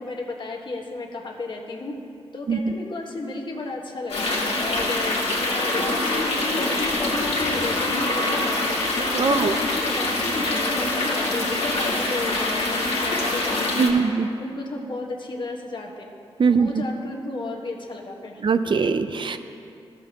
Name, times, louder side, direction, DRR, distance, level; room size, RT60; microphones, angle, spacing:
voice 1, 0.0-1.9 2.3-4.3 4.6-5.2 5.5-8.7 9.2-14.0 14.4-16.1 16.5-18.4, left 3 dB, 50° left, 0 dB, 1.4 m, -33 dB
sound 1, 4.1-13.9, left 2 dB, 70° left, 1.7 m, -24 dB
voice 2, 9.1-9.5 13.8-14.3 16.4-16.8 18.4-19.4, right 5 dB, 50° right, 9 dB, 0.5 m, -21 dB
14.0 x 6.9 x 2.9 m, 2.6 s
cardioid pair, 55°, 10 cm